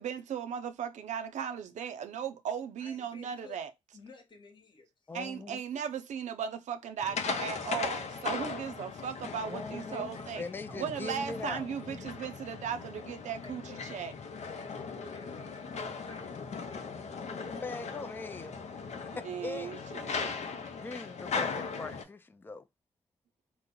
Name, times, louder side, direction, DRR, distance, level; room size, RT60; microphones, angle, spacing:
voice 1, 0.0-3.7 5.1-10.4 10.8-14.1 19.3-20.4, right 7 dB, 75° right, 0.5 m, -37 dB
voice 2, 2.8-3.6 3.9-4.9 9.4-11.4 13.4-13.9 14.4-17.8, left 3 dB, 40° left, 1.0 m, -53 dB
voice 3, 5.1-5.6 9.4-11.7 17.2-19.8 20.8-22.6, left 3 dB, 15° left, 0.3 m, -41 dB
sound 1, 7.0-22.0, left 5 dB, 65° left, 0.6 m, -38 dB
3.0 x 2.0 x 3.6 m
supercardioid pair, 45°, 12 cm